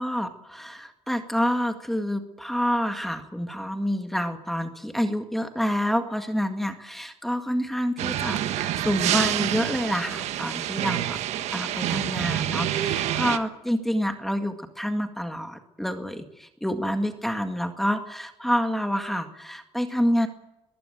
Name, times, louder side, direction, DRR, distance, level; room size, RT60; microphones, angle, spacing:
voice 1, 0.0-11.2 11.5-20.3, equal, ahead, 6 dB, 1.9 m, -28 dB
sound 1, 8.0-13.4, right 12 dB, 75° right, 1.4 m, -27 dB
22.5 x 14.5 x 9.2 m, 0.92 s
cardioid pair, 130°, 12 cm